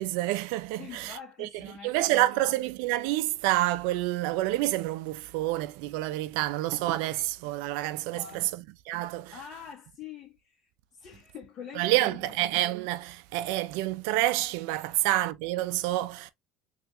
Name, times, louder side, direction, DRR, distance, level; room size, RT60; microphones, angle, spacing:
voice 1, 0.0-1.5 1.8-8.5 8.9-9.4 11.7-16.3, right 16 dB, 80° right, 0.3 m, -28 dB
voice 2, 0.8-2.7 8.1-8.5 9.3-12.4 14.9-15.1, left 8 dB, 50° left, 1.3 m, -46 dB
3.6 x 2.8 x 2.4 m
supercardioid pair, 110°, 0 cm